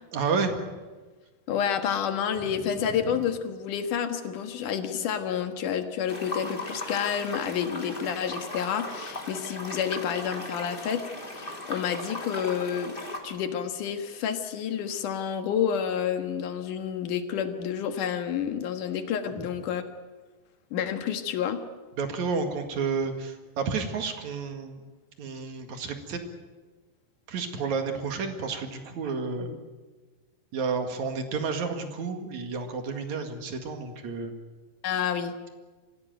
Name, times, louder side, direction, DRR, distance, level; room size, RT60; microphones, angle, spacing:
voice 1, 0.1-0.6 2.8-3.0 19.4-19.5 22.0-24.8 25.2-26.2 27.3-29.5 30.5-34.3, right 5 dB, 50° right, 5 dB, 2.8 m, -31 dB
voice 2, 1.5-12.9 13.2-19.8 20.7-21.6 29.4-29.6 34.8-35.3, left 8 dB, 60° left, 7 dB, 2.6 m, -29 dB
sound 1, 6.1-13.2, left 1 dB, 15° left, 2.0 m, -38 dB
24.5 x 16.5 x 9.3 m, 1.3 s
omnidirectional pair, 4.8 m